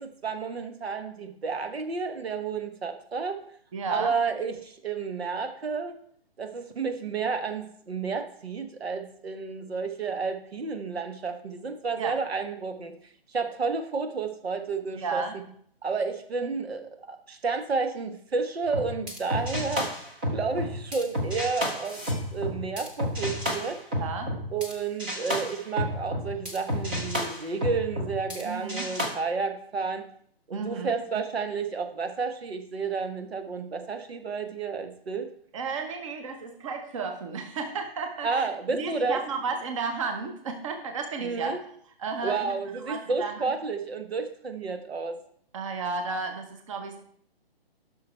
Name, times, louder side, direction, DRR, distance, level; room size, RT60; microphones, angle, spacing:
voice 1, 0.0-3.4 3.9-6.0 6.4-13.0 13.3-15.4 15.8-19.9 20.3-22.0 22.3-23.8 24.5-30.1 30.5-35.3 38.2-39.2 41.2-41.6 42.2-45.2, right 4 dB, 80° right, 7 dB, 1.4 m, -31 dB
voice 2, 3.7-4.1 12.0-12.2 14.9-15.3 24.0-24.3 28.4-28.9 30.5-30.9 35.5-41.5 42.0-42.5 42.9-43.5 45.5-47.0, right 4 dB, 30° right, 5 dB, 1.1 m, -33 dB
sound 1, 18.7-24.7 25.0-28.4 28.7-29.1, equal, 10° right, 0.5 m, -31 dB
10.5 x 6.2 x 4.5 m, 0.65 s
hypercardioid pair, 160°, 30 cm